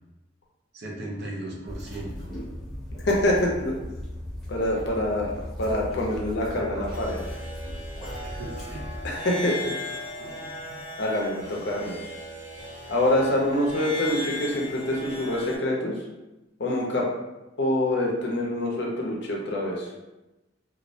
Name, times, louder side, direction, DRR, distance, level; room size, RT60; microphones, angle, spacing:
voice 1, 0.7-2.3 8.3-8.9 10.2-10.9, right 1 dB, 55° right, -1 dB, 0.5 m, -38 dB
sound 1, 1.6-9.1, left 1 dB, ahead, 0.7 m, -37 dB
voice 2, 3.1-3.7 4.5-7.3 9.0-9.7 11.0-12.0 12.9-15.9 16.6-17.1 17.6-19.9, left 1 dB, 55° left, -1 dB, 0.5 m, -25 dB
sound 2, 6.9-15.6, left 1 dB, 40° right, 0.8 m, -37 dB
2.3 x 2.0 x 2.6 m, 1.0 s
head